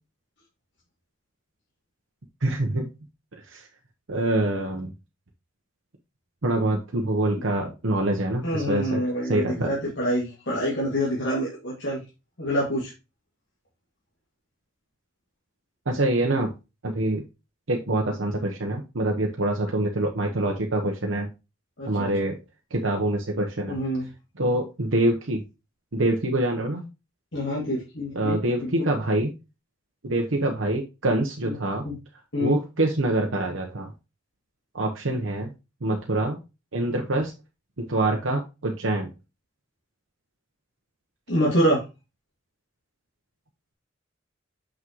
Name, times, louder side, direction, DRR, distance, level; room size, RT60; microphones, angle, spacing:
voice 1, 2.4-2.9 3.5-3.7 4.1-4.9 6.4-9.7 15.9-16.5 16.8-17.2 17.7-21.3 21.9-22.4 22.7-23.7 24.4-25.4 25.9-26.8 28.1-29.3 30.0-31.8 32.4-33.9 34.7-35.5 35.8-36.4 36.7-37.3 37.8-39.1, right 1 dB, 85° right, 1 dB, 1.0 m, -25 dB
voice 2, 8.4-12.0 12.4-12.9 21.8-22.1 23.7-24.1 27.3-28.9 31.4-31.5 31.8-31.9 32.3-32.6 41.3-41.8, equal, 65° left, -6 dB, 2.3 m, -26 dB
6.3 x 6.1 x 3.0 m, 0.27 s
head